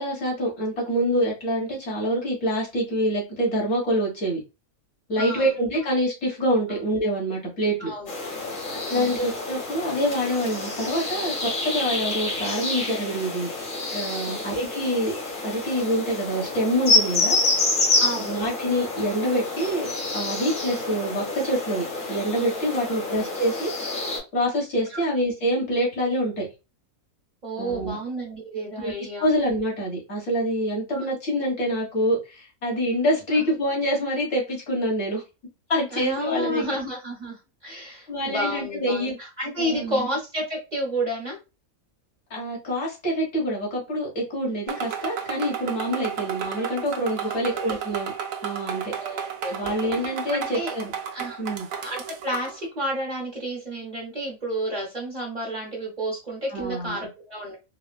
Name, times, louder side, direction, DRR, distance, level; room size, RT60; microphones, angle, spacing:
voice 1, 0.0-4.4 5.1-7.9 8.9-13.7 13.9-15.1 15.4-17.4 18.2-23.7 24.3-26.5 27.6-28.0 28.8-28.9 29.2-35.2 35.7-36.7 38.1-39.2 39.6-40.1 42.3-48.1 48.4-49.2 49.5-50.9 51.4-51.7 56.5-57.1, equal, 65° left, -3 dB, 1.7 m, -26 dB
voice 2, 5.2-5.5 6.7-6.8 7.8-8.6 8.9-9.2 14.3-14.4 18.0-18.3 22.9-23.0 24.9-25.0 27.4-29.3 30.9-31.1 33.3-33.4 35.9-41.4 47.3-47.8 48.9-49.6 50.3-50.7 51.1-51.4 51.8-57.6, equal, 35° right, -3 dB, 0.9 m, -31 dB
sound 1, 8.1-24.2, left 2 dB, 80° left, 1.8 m, -28 dB
sound 2, 44.7-52.6, right 8 dB, 75° right, 1.0 m, -33 dB
4.0 x 2.1 x 2.2 m, 0.28 s
omnidirectional pair, 1.4 m